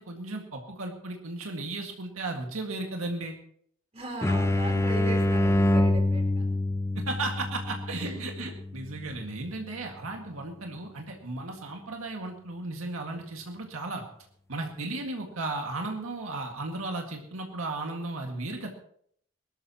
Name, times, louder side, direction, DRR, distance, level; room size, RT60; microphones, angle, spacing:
voice 1, 0.0-3.3 7.0-14.0 14.5-18.7, right 2 dB, 85° right, 2 dB, 2.0 m, -35 dB
voice 2, 3.9-6.5 8.0-8.2, right 1 dB, 30° right, 0 dB, 4.0 m, -37 dB
sound 1, 4.2-9.7, left 1 dB, 15° left, 0.5 m, -26 dB
22.0 x 13.0 x 3.0 m, 0.63 s
head